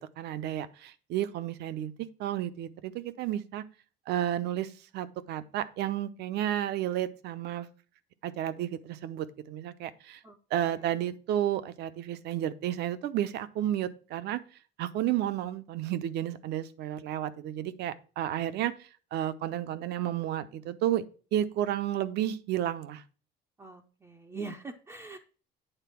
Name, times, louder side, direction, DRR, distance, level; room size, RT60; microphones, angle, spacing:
voice 1, 0.2-3.6 4.1-7.7 8.2-10.2 10.5-14.4 14.8-21.0 21.3-23.0, right 12 dB, 60° right, 14 dB, 0.8 m, -32 dB
voice 2, 23.6-25.2, right 3 dB, 15° right, 3 dB, 0.6 m, -42 dB
9.0 x 3.9 x 5.8 m, 0.36 s
cardioid pair, 155°, 19 cm